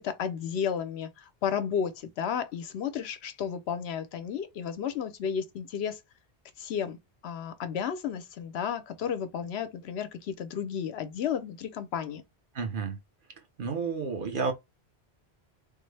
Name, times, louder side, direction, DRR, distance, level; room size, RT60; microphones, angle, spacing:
voice 1, 0.0-6.0 6.6-7.0 7.2-12.2, left 8 dB, 80° left, 0.9 m, -33 dB
voice 2, 12.5-13.0 13.6-14.5, right 4 dB, 55° right, 0.9 m, -31 dB
3.6 x 2.0 x 3.2 m
omnidirectional pair, 1.1 m